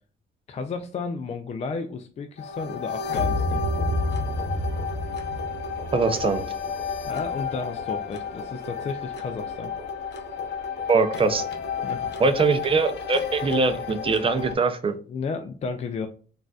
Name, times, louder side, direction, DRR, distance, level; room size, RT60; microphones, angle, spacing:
voice 1, 0.5-3.6 7.1-9.7 11.8-12.1 14.9-16.1, left 4 dB, 35° left, 7 dB, 0.3 m, -33 dB
sound 1, 2.4-14.5, left 4 dB, 60° left, 0.7 m, -30 dB
voice 2, 5.9-6.4 10.9-11.4 12.2-15.0, right 4 dB, 25° right, 9 dB, 0.5 m, -22 dB
3.8 x 2.5 x 2.3 m, 0.40 s
cardioid pair, 90°, 20 cm